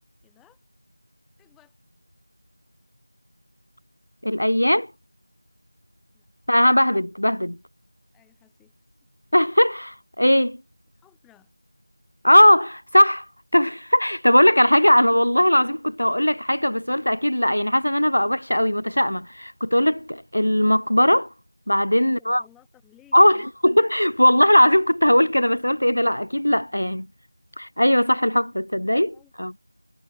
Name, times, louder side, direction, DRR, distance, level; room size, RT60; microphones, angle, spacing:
voice 1, 0.2-0.6 1.4-1.8 6.1-6.3 8.1-8.8 10.9-11.5 21.8-23.5 28.9-29.3, left 14 dB, 5° left, 3.0 m, -57 dB
voice 2, 4.2-4.9 6.5-7.6 9.3-10.6 12.2-13.3 13.5-21.3 21.7-22.4 23.1-27.1 27.6-29.5, equal, 80° left, 0.6 m, -19 dB
figure-of-eight pair, 175°, 0 cm